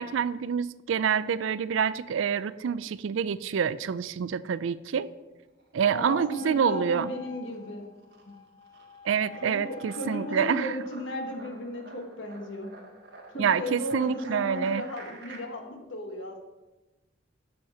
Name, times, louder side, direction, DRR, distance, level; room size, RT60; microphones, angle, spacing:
voice 1, 0.0-5.1 5.7-7.1 9.0-10.8 13.4-14.9, right 7 dB, 75° right, 16 dB, 0.4 m, -27 dB
sound 1, 5.4-6.3 6.6-15.4, right 3 dB, 50° right, 1.6 m, -50 dB
voice 2, 5.9-7.9 9.4-12.7 13.3-16.4, left 1 dB, 70° left, 3 dB, 1.4 m, -35 dB
Wind instrument woodwind instrument, 6.3-10.8, left 5 dB, 20° left, 0.5 m, -48 dB
7.0 x 6.5 x 7.2 m, 1.1 s
head